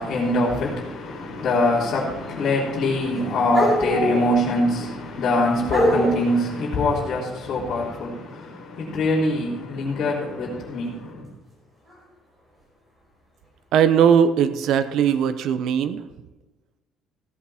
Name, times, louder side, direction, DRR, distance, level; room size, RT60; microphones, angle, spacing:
voice 1, 0.0-11.3, left 2 dB, 40° left, 3.5 m, -24 dB
sound 1, 2.4-2.6 2.9-4.7 5.6-6.2 10.4-10.7 11.9-12.0 14.1-14.2 15.1-15.3, equal, 15° right, 5.0 m, -24 dB
voice 2, 13.7-16.0, right 8 dB, 65° right, 0.8 m, -19 dB
16.5 x 8.7 x 4.4 m
cardioid pair, 155°, 0 cm